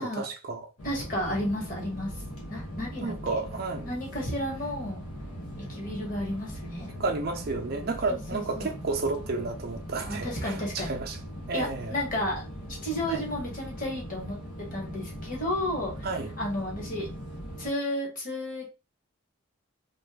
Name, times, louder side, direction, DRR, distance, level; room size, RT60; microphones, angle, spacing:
voice 1, 0.0-0.7 3.0-3.9 7.0-11.2 11.5-12.0 13.1-13.3 16.0-16.3, right 3 dB, 45° right, 0.5 m, -32 dB
sound 1, 0.8-17.7, equal, 85° left, 1.0 m, -40 dB
voice 2, 0.8-2.1 2.5-3.1 3.7-5.0 5.7-6.9 8.1-8.7 10.0-10.9 11.5-12.4 12.8-14.4 14.7-16.1 16.4-17.1 17.6-18.7, left 1 dB, 35° left, 1.2 m, -32 dB
2.6 x 2.3 x 3.3 m
head